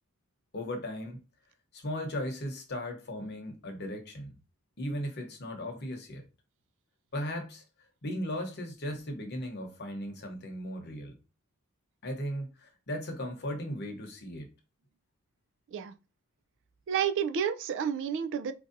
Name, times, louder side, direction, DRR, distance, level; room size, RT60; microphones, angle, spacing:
voice 1, 0.5-1.2 1.7-4.3 4.8-6.3 7.1-7.6 8.0-11.2 12.0-14.5, equal, 50° left, 0.9 m, -37 dB
voice 2, 16.9-18.5, right 8 dB, 55° right, 0.3 m, -30 dB
4.5 x 2.6 x 2.5 m
head